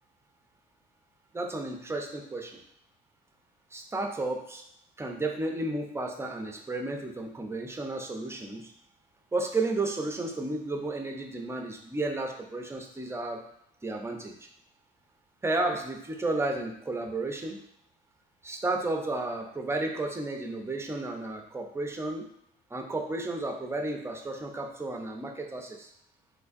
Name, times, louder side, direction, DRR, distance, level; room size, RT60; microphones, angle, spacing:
voice 1, 1.3-2.6 3.7-4.6 5.0-8.7 9.3-13.4 13.8-14.3 15.4-17.6 18.4-22.3 22.7-25.9, right 2 dB, 15° right, 2 dB, 0.5 m, -32 dB
3.4 x 3.2 x 2.5 m, 0.72 s
cardioid pair, 110°, 17 cm